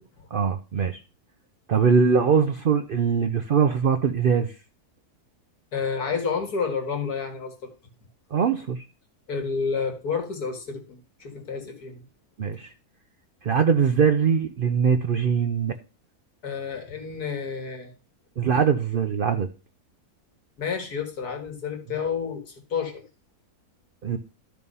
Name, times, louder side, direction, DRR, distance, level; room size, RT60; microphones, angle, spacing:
voice 1, 0.3-1.0 1.7-4.5 8.3-8.8 12.4-12.7 13.4-15.7 18.4-19.5 24.0-24.2, right 6 dB, 55° right, 7 dB, 0.6 m, -22 dB
voice 2, 5.7-7.7 9.3-12.0 16.4-17.9 20.6-23.0, left 5 dB, 75° left, 4 dB, 2.5 m, -30 dB
12.5 x 4.6 x 5.5 m, 0.33 s
omnidirectional pair, 1.7 m